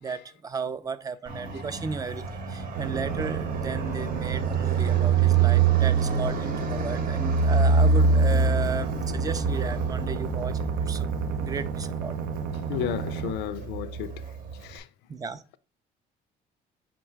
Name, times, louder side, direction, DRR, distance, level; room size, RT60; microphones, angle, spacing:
voice 1, 0.0-12.1 15.1-15.4, right 5 dB, 20° right, 0.4 m, -34 dB
Fixed-wing aircraft airplane, 1.3-14.8, right 5 dB, 60° right, 0.9 m, -26 dB
sound 1, 2.7-13.3, right 6 dB, 90° right, 0.6 m, -32 dB
voice 2, 12.7-14.2 14.6-14.8, left 11 dB, 85° left, 0.4 m, -32 dB
5.0 x 2.2 x 4.4 m
cardioid pair, 110°, 17 cm